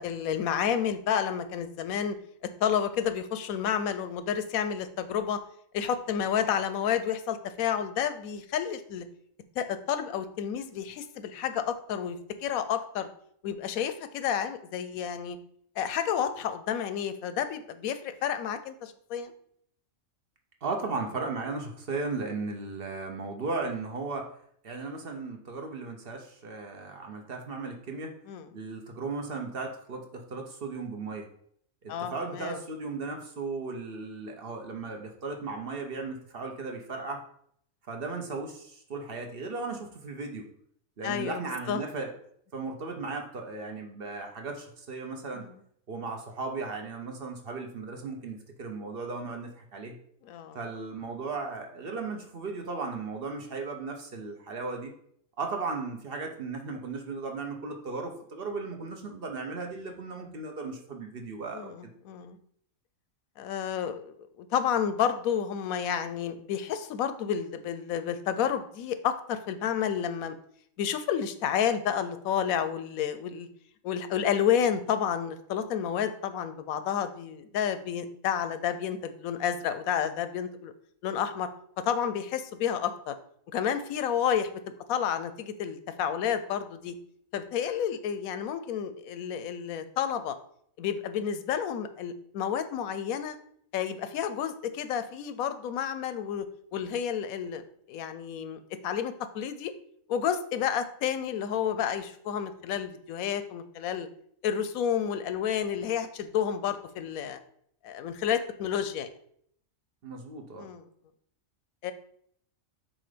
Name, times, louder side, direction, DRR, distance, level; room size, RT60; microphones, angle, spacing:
voice 1, 0.0-2.2 2.6-5.4 5.7-9.0 9.6-13.1 13.4-15.4 15.8-19.3 28.3-28.5 31.9-32.6 41.0-41.4 41.7-41.8 45.4-45.5 50.2-50.6 61.5-62.4 63.4-70.4 70.8-73.5 73.8-80.7 81.0-81.5 81.8-83.1 83.5-84.5 84.9-86.9 87.3-90.4 90.8-93.4 93.7-96.5 96.7-99.7 100.1-104.1 104.4-107.4 107.8-109.1 110.6-110.8 111.8-111.9, left 8 dB, 90° left, 11 dB, 1.1 m, -30 dB
voice 2, 20.6-24.3 24.6-28.1 28.5-31.3 31.8-37.2 37.9-40.4 41.0-42.1 42.5-45.5 45.9-49.9 50.5-54.9 55.4-61.9 110.0-110.7, right 3 dB, 50° right, 3 dB, 0.9 m, -36 dB
7.3 x 2.6 x 5.0 m, 0.66 s
omnidirectional pair, 1.4 m